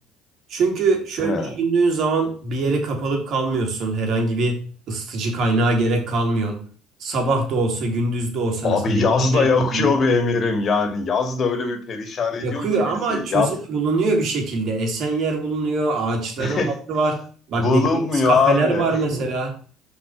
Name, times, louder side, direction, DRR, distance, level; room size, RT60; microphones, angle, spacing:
voice 1, 0.5-4.6 4.9-6.7 7.0-10.0 12.4-17.2 17.5-17.8 18.2-19.5, right 3 dB, 60° right, 3 dB, 2.8 m, -23 dB
voice 2, 8.6-13.5 16.4-16.7 17.6-19.2, left 4 dB, 45° left, 7 dB, 2.2 m, -21 dB
6.1 x 4.9 x 6.4 m, 0.43 s
supercardioid pair, 80°, 0 cm